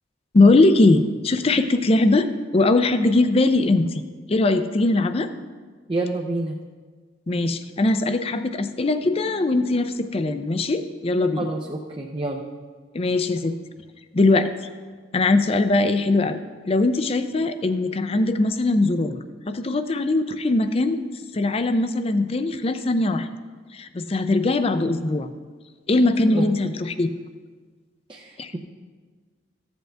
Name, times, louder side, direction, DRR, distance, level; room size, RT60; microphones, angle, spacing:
voice 1, 0.3-2.3 2.5-4.0 4.3-5.3 7.3-11.5 12.9-13.5 14.1-14.5 15.1-16.4 16.7-21.0 21.3-23.3 23.7-25.3 25.9-27.1 28.4-28.5, left 2 dB, 35° left, 10 dB, 0.5 m, -20 dB
voice 2, 5.9-6.6 11.4-12.4 26.3-26.8 28.1-28.6, right 2 dB, 25° right, 0 dB, 0.5 m, -28 dB
14.5 x 8.0 x 3.4 m, 1.5 s
head